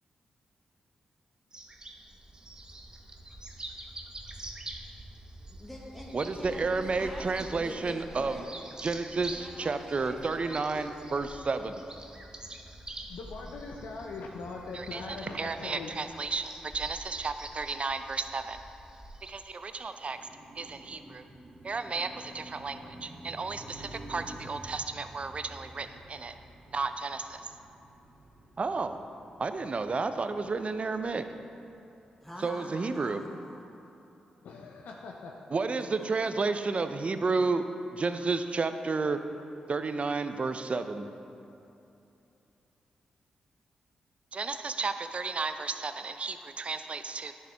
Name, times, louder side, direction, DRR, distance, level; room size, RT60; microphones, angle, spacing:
sound 1, 1.5-19.3, right 1 dB, 25° right, 0.9 m, -46 dB
voice 1, 5.4-8.5 9.1-10.9 32.2-33.7 36.5-36.6, equal, 5° left, -2 dB, 1.3 m, -45 dB
voice 2, 6.1-8.5 8.8-11.8 14.7-18.6 19.3-20.2 20.6-21.2 21.6-26.3 26.7-27.4 28.6-29.0 29.4-31.3 32.4-33.2 35.5-37.7 37.9-39.2 39.7-41.1 44.3-47.3, right 4 dB, 45° right, 9 dB, 0.5 m, -32 dB
voice 3, 13.1-16.1 34.4-35.4, left 4 dB, 75° left, 0 dB, 0.6 m, -41 dB
Car passing by, 19.9-32.1, right 1 dB, 60° right, 1.1 m, -50 dB
10.0 x 6.5 x 3.4 m, 2.8 s
supercardioid pair, 40°, 3 cm